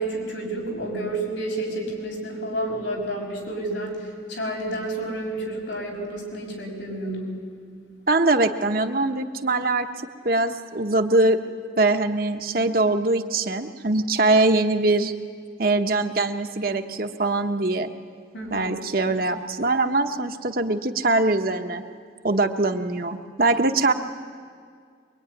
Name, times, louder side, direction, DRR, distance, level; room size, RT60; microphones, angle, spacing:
voice 1, 0.0-7.4 18.3-18.8, right 1 dB, 90° left, 0 dB, 6.2 m, -30 dB
voice 2, 8.1-9.9 10.2-11.4 11.8-15.1 15.6-17.9 18.5-21.8 22.2-23.9, right 2 dB, 50° right, 6 dB, 1.1 m, -22 dB
23.5 x 22.5 x 9.8 m, 2.1 s
head